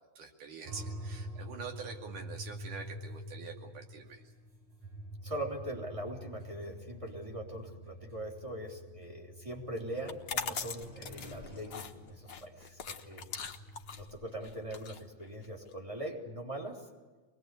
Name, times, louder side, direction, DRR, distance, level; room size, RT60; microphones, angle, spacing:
voice 1, 0.2-4.2, right 5 dB, 70° right, 2 dB, 4.1 m, -45 dB
sound 1, 0.6-14.9, equal, 50° right, 6.4 m, -47 dB
voice 2, 5.2-13.3 14.0-16.8, right 1 dB, 10° right, 0 dB, 3.3 m, -41 dB
sound 2, 10.0-15.7, left 6 dB, 65° left, 1.0 m, -41 dB
24.0 x 21.0 x 8.3 m, 1.3 s
omnidirectional pair, 3.9 m